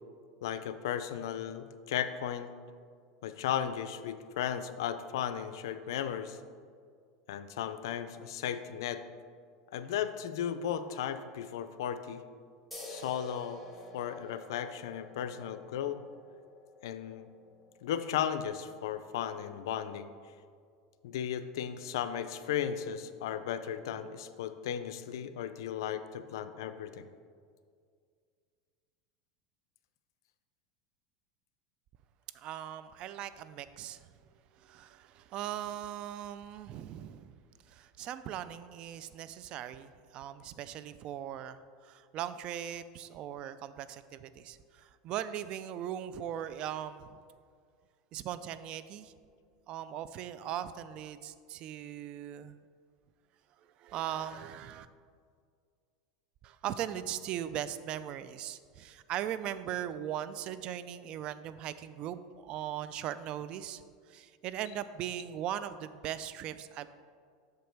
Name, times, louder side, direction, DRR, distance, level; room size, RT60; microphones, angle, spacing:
voice 1, 0.4-2.5 3.2-6.4 7.3-9.0 9.7-12.2 12.9-13.6 13.9-16.0 16.8-17.3 17.8-20.1 21.0-27.0, left 9 dB, 85° left, 11 dB, 0.4 m, -35 dB
sound 1, 12.7-19.8, left 1 dB, ahead, 1.5 m, -51 dB
voice 2, 32.3-34.1 34.6-37.4 37.7-47.2 48.1-49.1 49.7-52.6 53.8-54.9 56.4-63.8 64.1-66.9, right 10 dB, 45° right, 14 dB, 0.3 m, -39 dB
6.5 x 5.2 x 4.5 m, 2.1 s
supercardioid pair, 125°, 2 cm